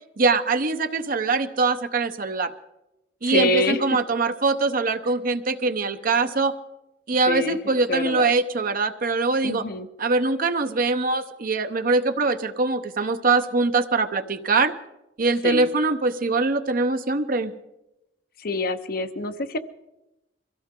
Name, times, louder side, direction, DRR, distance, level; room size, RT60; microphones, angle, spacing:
voice 1, 0.2-2.5 3.2-6.5 7.1-9.6 10.0-14.7 15.2-17.5, right 3 dB, 50° right, 9 dB, 0.8 m, -23 dB
voice 2, 3.2-3.8 7.3-7.6 7.9-8.3 9.4-9.9 15.4-15.7 18.4-19.6, left 2 dB, 55° left, 9 dB, 0.8 m, -26 dB
24.0 x 16.0 x 3.8 m, 0.93 s
head